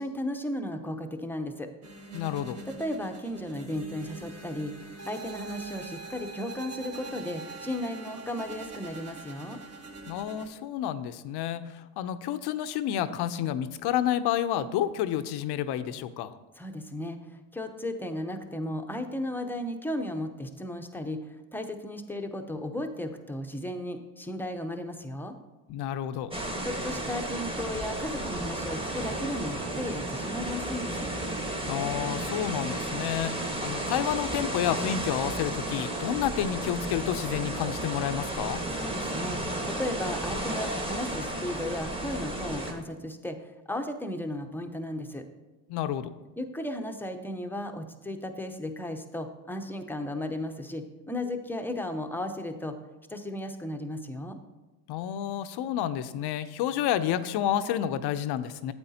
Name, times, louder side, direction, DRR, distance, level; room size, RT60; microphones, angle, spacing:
voice 1, 0.0-1.7 2.8-4.7 5.0-9.6 16.6-17.2 17.5-21.2 21.5-25.3 26.6-31.1 38.7-45.2 46.4-52.8 53.1-54.4, left 1 dB, 5° left, 5 dB, 0.7 m, -35 dB
sound 1, 1.8-10.5, right 3 dB, 30° right, 1.3 m, -43 dB
voice 2, 2.1-2.6 10.1-16.4 25.7-26.3 31.7-38.6 45.7-46.1 54.9-58.7, left 10 dB, 60° left, 12 dB, 0.6 m, -30 dB
sound 2, 26.3-42.7, right 1 dB, 10° right, 1.3 m, -33 dB
8.8 x 8.3 x 2.8 m, 1.1 s
supercardioid pair, 80°, 47 cm